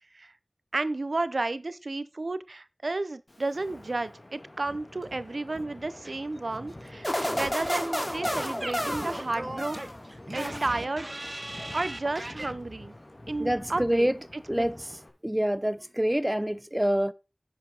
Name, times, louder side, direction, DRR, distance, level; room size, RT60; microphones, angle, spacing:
voice 1, 0.7-9.8 10.3-11.4 11.7-13.0 13.3-14.7, right 2 dB, 80° right, 0.6 m, -32 dB
Wind, 3.3-15.1, left 1 dB, 45° left, 3.0 m, -46 dB
sound 1, 7.0-10.0 10.4-11.0, left 1 dB, 20° left, 2.5 m, -32 dB
Singing / Scratching (performance technique), 7.2-12.5, right 1 dB, 45° right, 0.9 m, -39 dB
voice 2, 13.4-14.1 14.5-14.9 15.2-17.1, equal, 15° right, 0.6 m, -26 dB
10.5 x 7.5 x 3.9 m
wide cardioid pair, 50°, 0 cm